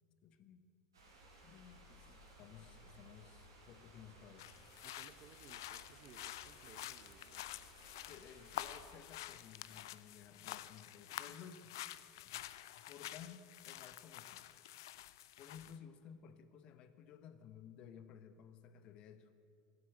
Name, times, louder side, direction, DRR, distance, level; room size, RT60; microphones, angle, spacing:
voice 1, 0.2-0.6 1.4-4.7 8.1-11.7 12.2-12.4 12.7-14.5 15.4-19.3, left 8 dB, 50° left, 11 dB, 1.0 m, -56 dB
sound 1, 0.9-9.0, right 1 dB, 90° right, 3.1 m, -60 dB
voice 2, 1.9-2.3 4.8-7.7, right 8 dB, 45° right, 13 dB, 0.7 m, -62 dB
sound 2, 4.4-15.8, left 14 dB, 70° left, 0.4 m, -49 dB
15.0 x 8.1 x 7.7 m, 2.5 s
hypercardioid pair, 85°, 2 cm